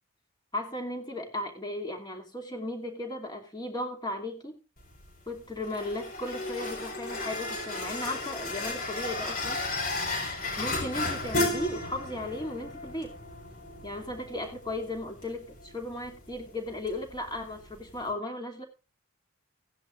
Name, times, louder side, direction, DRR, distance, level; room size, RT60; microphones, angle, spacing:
voice 1, 0.5-4.6 5.3-9.6 10.6-13.2 13.8-18.6, left 1 dB, 20° left, 3 dB, 2.6 m, -36 dB
sound 1, 4.8-18.1, left 2 dB, 45° left, 4.2 m, -35 dB
16.5 x 10.5 x 2.5 m, 0.30 s
head